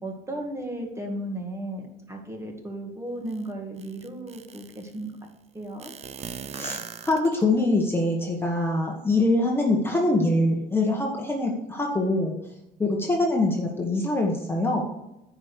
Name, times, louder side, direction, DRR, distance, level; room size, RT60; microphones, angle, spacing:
voice 1, 0.0-5.1 5.5-5.9, right 1 dB, 15° right, 2 dB, 1.9 m, -35 dB
sound 1, 3.3-3.4 3.8-4.9 5.8-7.6, right 7 dB, 40° right, 0.5 m, -39 dB
voice 2, 6.5-12.4 12.8-14.8, left 2 dB, 15° left, 0 dB, 1.3 m, -24 dB
9.0 x 5.2 x 6.4 m, 0.92 s
cardioid pair, 110°, 17 cm